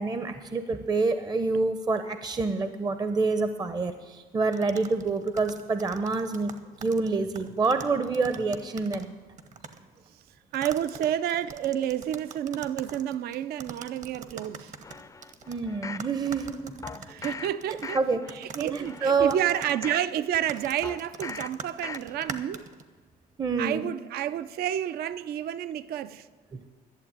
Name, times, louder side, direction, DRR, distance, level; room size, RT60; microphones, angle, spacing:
voice 1, 0.0-6.5 6.8-9.1 15.5-16.7 17.7-18.2 18.5-19.4 23.4-23.8 26.5-26.6, right 4 dB, 25° right, 0.6 m, -27 dB
sound 1, 4.5-9.1 9.4-9.8 10.5-15.6 16.0-17.9 18.3-22.8, right 5 dB, 45° right, 1.1 m, -43 dB
voice 2, 10.5-14.7 17.0-18.0 18.3-22.6 23.6-26.3, right 11 dB, 65° right, 0.5 m, -30 dB
sound 2, 14.8-16.1 16.8-17.5 17.8-18.3 18.8-20.1 20.8-21.5 21.8-22.3 22.7-22.8, left 5 dB, 20° left, 0.4 m, -40 dB
12.0 x 7.4 x 8.8 m
cardioid pair, 110°, 17 cm